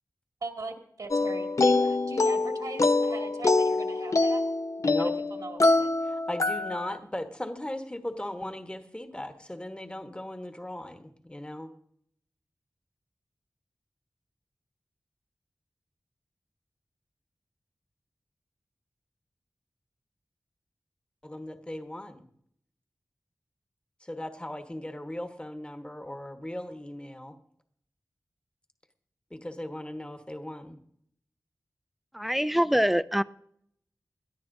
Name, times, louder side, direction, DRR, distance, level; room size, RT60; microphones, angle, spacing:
voice 1, 0.4-4.4 4.9-5.9, right 3 dB, 75° right, 2 dB, 2.3 m, -40 dB
sound 1, 1.1-7.0, left 2 dB, 55° left, 0.7 m, -25 dB
voice 2, 6.1-11.7 21.2-22.3 24.0-27.3 29.3-30.8, left 1 dB, 15° left, 6 dB, 1.2 m, -37 dB
voice 3, 32.1-33.2, equal, ahead, 13 dB, 0.5 m, -24 dB
21.0 x 13.5 x 2.7 m, 0.69 s
wide cardioid pair, 55°, 6 cm